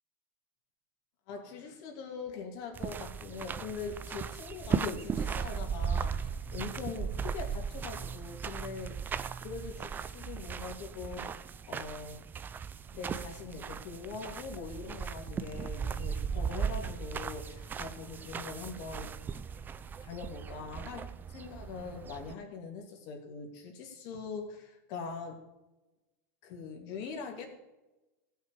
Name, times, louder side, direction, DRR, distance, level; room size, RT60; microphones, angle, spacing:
voice 1, 1.3-9.1 9.4-11.4 11.7-12.2 12.9-19.1 20.0-25.4 26.4-27.5, left 5 dB, 55° left, 2 dB, 2.6 m, -42 dB
sound 1, 2.7-22.3, right 7 dB, 20° right, 0.5 m, -37 dB
16.0 x 5.8 x 4.9 m, 1.0 s
supercardioid pair, 120°, 9 cm